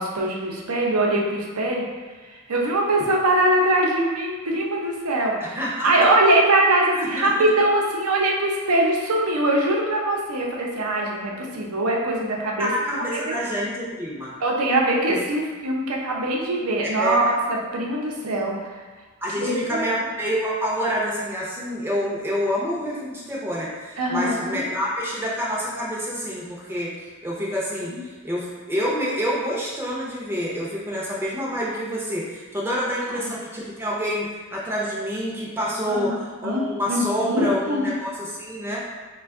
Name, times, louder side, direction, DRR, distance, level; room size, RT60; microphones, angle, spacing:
voice 1, 0.0-1.8 2.2-5.6 5.8-12.7 13.1-13.4 14.4-18.8 19.4-19.8 24.0-24.6 27.9-28.0 33.2-33.3 35.9-37.9, right 1 dB, 90° right, -1 dB, 0.6 m, -22 dB
voice 2, 5.4-5.9 6.9-7.3 12.6-14.3 17.0-17.3 19.2-26.9 27.2-36.1 36.4-38.8, equal, 10° right, -6 dB, 0.5 m, -27 dB
3.3 x 2.2 x 3.5 m, 1.4 s
head